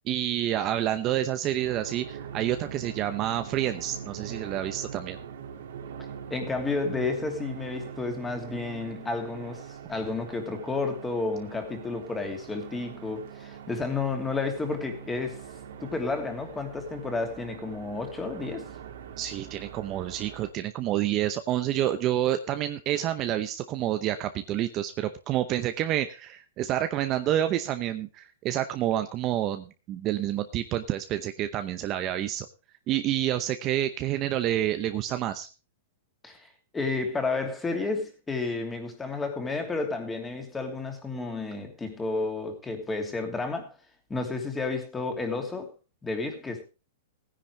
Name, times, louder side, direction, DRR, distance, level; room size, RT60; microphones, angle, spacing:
voice 1, 0.1-5.2 19.2-32.5 32.9-35.5, right 12 dB, 30° right, 0.8 m, -28 dB
sound 1, 1.6-20.5, right 7 dB, 70° right, 2.4 m, -42 dB
voice 2, 6.3-15.4 15.8-18.6 36.2-36.5 36.7-43.7 44.1-45.7 46.0-46.6, left 3 dB, 10° left, 2.8 m, -31 dB
16.5 x 10.0 x 3.3 m
hypercardioid pair, 150°, 0 cm